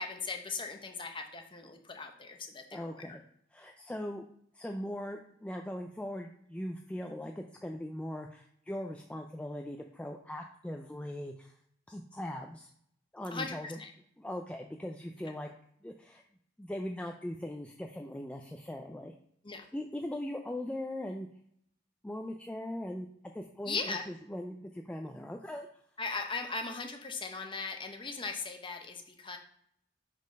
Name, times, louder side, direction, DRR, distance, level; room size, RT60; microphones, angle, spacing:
voice 1, 0.0-3.2 13.3-13.9 19.4-19.7 23.7-24.1 26.0-29.4, left 4 dB, 25° left, 4 dB, 0.8 m, -38 dB
voice 2, 2.7-3.2 3.5-4.3 4.5-11.5 11.9-12.7 13.1-13.8 14.2-15.5 15.8-16.2 16.6-19.1 19.7-21.3 22.0-23.1 23.3-25.7, left 1 dB, 5° left, 3 dB, 0.3 m, -40 dB
5.2 x 4.1 x 5.2 m, 0.68 s
head